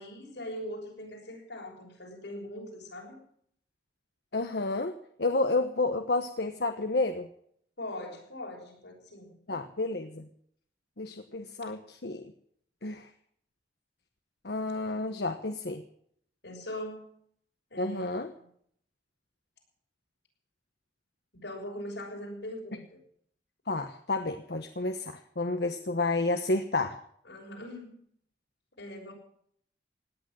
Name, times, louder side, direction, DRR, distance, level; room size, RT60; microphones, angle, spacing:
voice 1, 0.0-3.2 7.8-9.3 16.4-17.1 17.7-18.1 18.4-18.5 21.3-23.0 27.2-28.0 28.8-29.1, left 1 dB, 85° left, 0 dB, 6.5 m, -41 dB
voice 2, 4.3-7.3 9.5-10.3 11.0-12.3 12.8-13.1 14.4-15.8 17.8-18.3 23.7-27.0, left 2 dB, 65° left, 7 dB, 1.1 m, -30 dB
17.5 x 10.5 x 7.6 m, 0.66 s
head